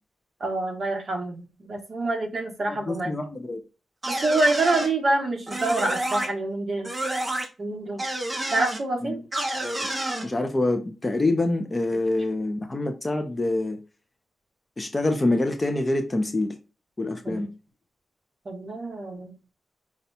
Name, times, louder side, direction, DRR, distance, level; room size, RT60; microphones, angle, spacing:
voice 1, 0.4-3.1 4.1-6.9 7.6-8.0 8.5-9.2 17.2-17.4 18.4-19.3, right 2 dB, 40° right, 1.3 m, -26 dB
voice 2, 2.7-3.6 9.0-9.2 9.6-9.8 10.2-13.8 14.8-16.6 17.0-17.5, left 2 dB, 20° left, 0.6 m, -26 dB
sound 1, 4.0-4.9 5.5-6.3 6.8-7.5 8.0-8.8 9.3-10.2, right 1 dB, 20° right, 0.9 m, -29 dB
5.3 x 2.3 x 4.1 m
wide cardioid pair, 170°, 0 cm